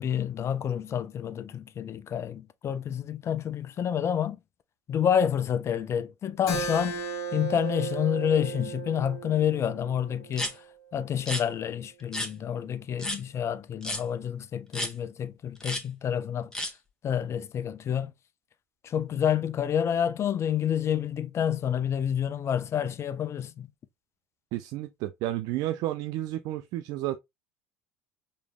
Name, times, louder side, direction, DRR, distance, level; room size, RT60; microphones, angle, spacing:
voice 1, 0.0-4.4 4.9-10.6 10.9-16.7 17.0-18.1 18.8-23.7, left 9 dB, 40° left, 0.5 m, -29 dB
Keyboard (musical), 6.5-11.7, right 4 dB, 60° left, 1.7 m, -36 dB
sound 1, 10.3-10.5 11.2-11.4 12.1-12.3 13.0-13.2 13.8-14.0 14.7-14.9 15.6-15.8 16.5-16.7, left 1 dB, 10° left, 1.3 m, -32 dB
voice 2, 24.5-27.2, right 14 dB, 60° right, 0.4 m, -31 dB
5.2 x 3.2 x 2.3 m
hypercardioid pair, 70°, 7 cm